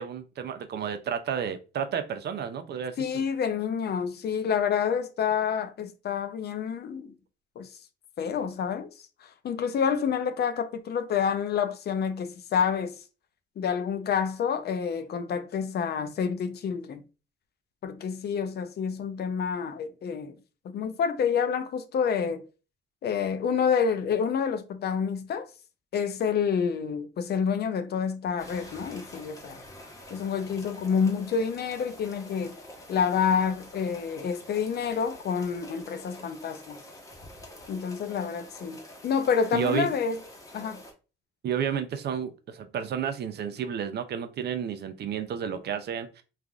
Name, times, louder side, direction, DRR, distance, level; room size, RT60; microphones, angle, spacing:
voice 1, 0.0-3.2 39.5-39.9 41.4-46.2, right 8 dB, 55° right, 0.5 m, -31 dB
voice 2, 3.0-7.1 7.6-7.7 8.2-8.9 9.4-13.0 13.6-17.0 17.8-20.4 20.6-22.4 23.0-25.5 25.9-29.6 30.1-32.6 32.9-36.8 37.7-40.2 40.5-40.8, left 6 dB, 55° left, 0.5 m, -28 dB
sound 1, 28.4-40.9, left 1 dB, 15° left, 0.9 m, -47 dB
3.2 x 2.4 x 2.2 m
cardioid pair, 90°, 20 cm